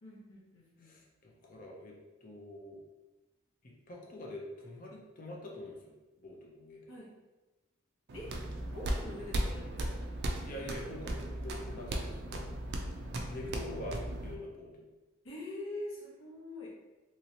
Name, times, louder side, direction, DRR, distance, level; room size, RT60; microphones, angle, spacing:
voice 1, 0.0-0.9 6.9-7.1 8.1-8.3 8.7-10.1 15.2-16.7, left 1 dB, 70° left, -3 dB, 0.9 m, -44 dB
voice 2, 0.8-2.8 3.6-6.9 10.4-12.5 13.3-14.9, left 1 dB, 40° left, -1 dB, 0.6 m, -45 dB
sound 1, 8.1-14.3, right 1 dB, 50° right, 0.4 m, -37 dB
3.0 x 2.9 x 2.8 m, 1.1 s
head